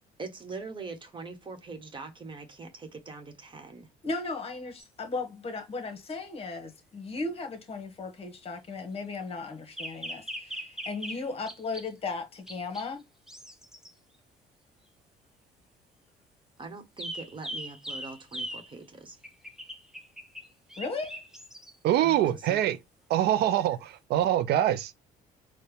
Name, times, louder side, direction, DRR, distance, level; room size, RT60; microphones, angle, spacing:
voice 1, 0.2-3.9 16.6-19.2 22.0-22.6, right 4 dB, 30° right, 1.3 m, -42 dB
voice 2, 4.0-13.0 20.8-21.2, left 3 dB, 35° left, 1.3 m, -36 dB
sound 1, 4.8-4.9 9.8-11.9 12.5-12.9 13.3-13.9 17.0-18.7 19.2-21.7 23.6-23.7, equal, 5° right, 0.8 m, -40 dB
voice 3, 21.8-22.8 23.1-24.9, right 12 dB, 75° right, 0.5 m, -24 dB
4.3 x 2.3 x 3.3 m
cardioid pair, 110°, 17 cm